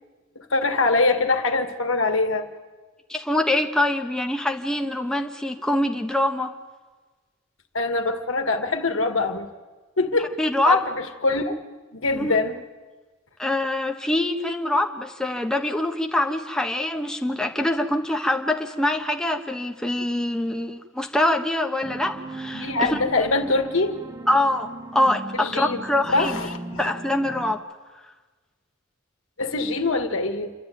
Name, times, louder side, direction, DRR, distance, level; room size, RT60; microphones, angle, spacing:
voice 1, 0.5-2.5 7.7-9.5 10.0-10.3 10.7-11.5 11.9-12.6 22.5-24.0 25.4-25.8 26.1-26.9 29.4-30.5, left 3 dB, 75° left, 7 dB, 1.9 m, -23 dB
voice 2, 3.1-6.5 10.2-10.8 12.2-12.3 13.4-23.0 24.3-26.4 26.8-27.6, left 1 dB, 5° left, 3 dB, 1.1 m, -24 dB
sound 1, 21.8-27.6, right 2 dB, 20° right, 1.1 m, -38 dB
28.0 x 12.5 x 9.3 m, 1.3 s
head